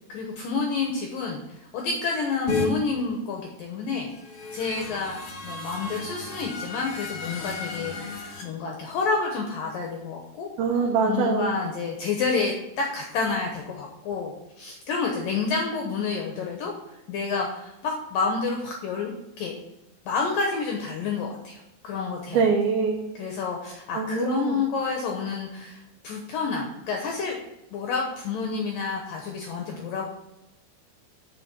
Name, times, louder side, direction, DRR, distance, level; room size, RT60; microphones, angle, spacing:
voice 1, 0.1-4.1 4.5-5.2 5.4-10.5 11.0-16.7 17.1-19.5 20.1-22.4 23.2-27.4 27.7-30.0, left 4 dB, 75° left, 1 dB, 2.0 m, -29 dB
sound 1, 2.5-2.7 4.1-8.4, left 4 dB, 55° left, 1.7 m, -33 dB
voice 2, 10.6-11.5 22.3-23.1 23.9-24.6, right 5 dB, 80° right, 2 dB, 2.3 m, -23 dB
7.5 x 6.0 x 5.9 m, 0.92 s
omnidirectional pair, 5.2 m